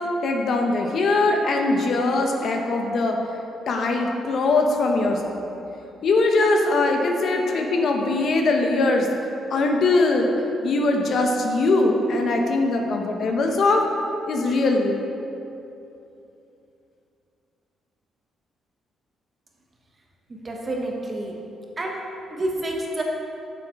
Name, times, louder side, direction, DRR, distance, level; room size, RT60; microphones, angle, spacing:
voice 1, 0.2-3.2 3.7-5.4 6.0-9.1 9.5-10.3 10.6-13.8 14.2-15.0, left 2 dB, 60° left, 2 dB, 0.9 m, -21 dB
voice 2, 20.3-21.3 21.8-22.0 22.3-23.0, right 1 dB, 30° right, -1 dB, 1.4 m, -29 dB
7.6 x 7.0 x 4.7 m, 2.8 s
cardioid pair, 95°, 0 cm